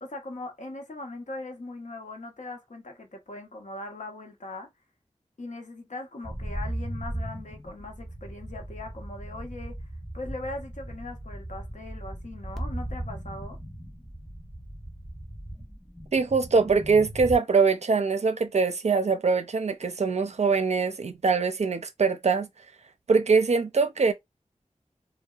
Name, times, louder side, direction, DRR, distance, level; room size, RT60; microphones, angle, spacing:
voice 1, 0.0-4.7 5.4-9.7 10.1-13.6, left 2 dB, 75° left, 0.8 m, -40 dB
sound 1, 6.2-17.4, right 1 dB, 5° left, 0.5 m, -37 dB
voice 2, 16.1-22.5 23.1-24.1, right 4 dB, 60° right, 0.4 m, -23 dB
2.7 x 2.1 x 2.3 m
wide cardioid pair, 65°, 13 cm